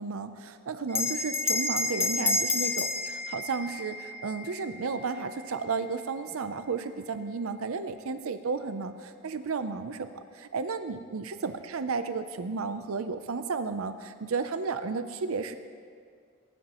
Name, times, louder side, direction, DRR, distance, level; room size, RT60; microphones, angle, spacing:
voice 1, 0.0-15.6, right 4 dB, 90° right, 10 dB, 0.6 m, -33 dB
Bell, 0.9-5.8, left 2 dB, 15° left, 0.5 m, -30 dB
21.0 x 11.5 x 3.0 m, 2.1 s
head